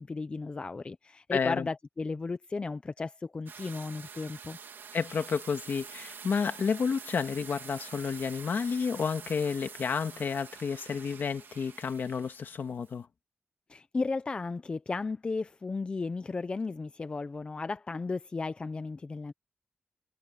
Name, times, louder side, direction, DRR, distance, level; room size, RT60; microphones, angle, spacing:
voice 1, 0.0-4.6 13.7-19.3, left 3 dB, 25° left, 0.5 m, -35 dB
voice 2, 1.3-1.7 4.9-13.1, left 6 dB, 60° left, 1.9 m, -31 dB
sound 1, 3.5-12.9, right 6 dB, 65° right, 2.1 m, -47 dB
wide cardioid pair, 175°, 4 cm